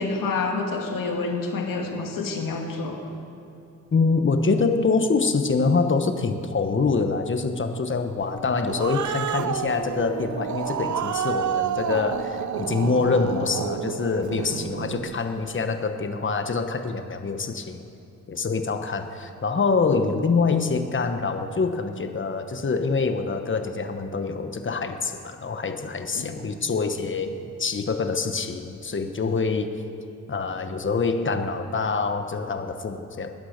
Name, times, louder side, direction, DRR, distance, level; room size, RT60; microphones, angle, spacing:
voice 1, 0.0-3.0 26.1-26.4, left 3 dB, 80° left, 2 dB, 2.2 m, -28 dB
voice 2, 3.9-17.8 18.3-27.3 27.6-29.7 30.3-33.3, left 4 dB, 35° left, 7 dB, 1.2 m, -25 dB
Growling, 8.4-15.2, right 8 dB, 60° right, 0.7 m, -30 dB
17.5 x 9.9 x 6.6 m, 2.8 s
cardioid pair, 75°, 33 cm